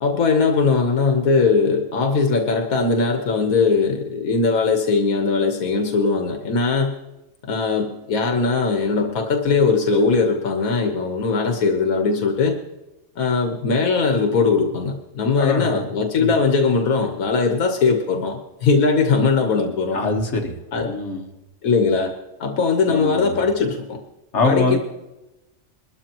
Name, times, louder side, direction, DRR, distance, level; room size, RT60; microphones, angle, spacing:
voice 1, 0.0-6.9 7.4-12.6 13.2-20.0 20.7-20.9 21.6-22.1 22.4-24.0 24.4-24.8, left 4 dB, 90° left, 3 dB, 1.5 m, -20 dB
voice 2, 15.4-15.9 16.2-16.3 19.9-20.5 20.8-21.3 22.9-23.4 24.3-24.8, left 3 dB, 55° left, 3 dB, 1.7 m, -23 dB
22.5 x 13.0 x 3.0 m, 0.98 s
omnidirectional pair, 1.4 m